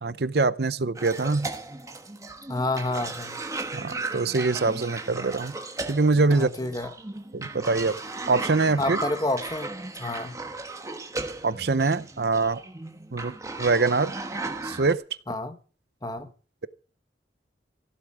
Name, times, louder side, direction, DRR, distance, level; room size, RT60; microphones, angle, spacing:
voice 1, 0.0-1.5 3.7-5.5 5.9-6.5 7.3-8.0 8.3-9.0 11.4-12.6 13.1-14.1 14.6-15.0, right 3 dB, 60° right, 0.6 m, -24 dB
Cough, 1.0-14.9, right 2 dB, 15° right, 1.2 m, -36 dB
voice 2, 2.5-3.4 6.3-6.9 8.8-10.4 15.3-15.6 16.0-16.3, left 2 dB, 20° left, 1.3 m, -29 dB
15.5 x 8.3 x 7.3 m
head